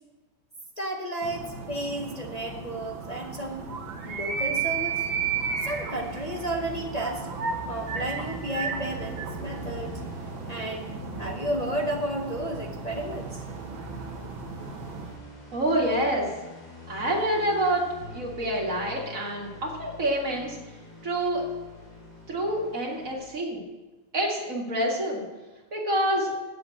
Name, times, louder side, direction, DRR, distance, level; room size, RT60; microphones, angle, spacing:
voice 1, 0.8-3.7 4.0-5.1 5.6-7.3 7.7-9.9 10.5-10.9 11.2-13.4, right 1 dB, 50° left, -1 dB, 0.4 m, -32 dB
sound 1, 1.2-15.2, right 5 dB, 65° right, 1.9 m, -34 dB
sound 2, 4.7-23.2, equal, 70° left, 4.8 m, -44 dB
voice 2, 15.5-16.3 16.9-20.6 21.0-21.5 22.3-23.6 24.1-25.2 25.7-26.3, right 1 dB, 40° right, -2 dB, 2.4 m, -27 dB
7.9 x 7.5 x 8.3 m, 1.2 s
omnidirectional pair, 2.3 m